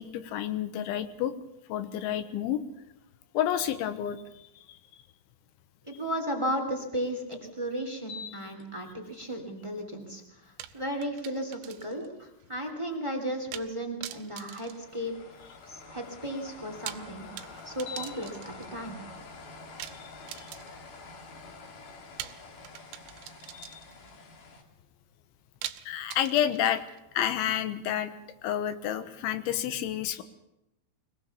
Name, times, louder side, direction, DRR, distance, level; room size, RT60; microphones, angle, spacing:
voice 1, 0.0-1.3 1.7-2.6 3.3-4.8 20.3-20.5 23.5-23.8 25.9-26.8 27.1-28.1 28.4-30.2, left 10 dB, 75° left, 11 dB, 3.4 m, -30 dB
voice 2, 5.9-15.1 15.6-17.3 17.6-19.0, equal, 10° right, 4 dB, 1.3 m, -35 dB
sound 1, 8.0-8.6 9.1-9.2 14.4-24.6, left 4 dB, 50° left, 3.4 m, -46 dB
sound 2, 10.6-12.1 12.4-12.5 13.5-13.8 14.0-15.6 16.6-18.8 19.8-21.0 22.2-24.1 25.6-27.0, right 13 dB, 90° right, 3.6 m, -44 dB
24.0 x 18.5 x 7.1 m, 0.91 s
omnidirectional pair, 5.7 m